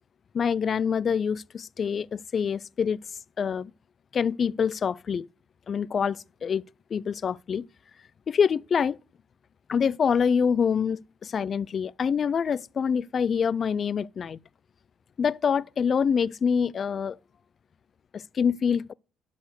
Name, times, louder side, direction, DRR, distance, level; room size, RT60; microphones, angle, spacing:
voice 1, 0.3-3.0 3.4-3.7 4.1-5.3 5.7-6.6 6.9-7.7 8.3-9.0 9.7-14.4 15.2-17.2 18.1-18.9, left 6 dB, 45° left, 0.4 m, -26 dB
12.0 x 4.2 x 6.6 m
cardioid pair, 95°, 0 cm